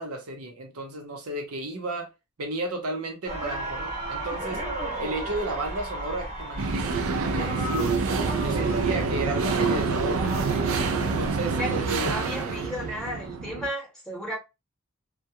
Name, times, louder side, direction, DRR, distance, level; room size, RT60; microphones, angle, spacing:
voice 1, 0.0-2.1 2.4-4.6 5.0-8.0 8.4-10.5 11.0-12.1, right 2 dB, 90° right, 0.8 m, -33 dB
sound 1, 3.2-11.3, right 1 dB, 35° right, 0.8 m, -34 dB
sound 2, 6.6-13.7, right 4 dB, 65° right, 0.4 m, -27 dB
voice 2, 11.6-14.4, equal, 5° left, 0.9 m, -34 dB
2.3 x 2.2 x 2.7 m
head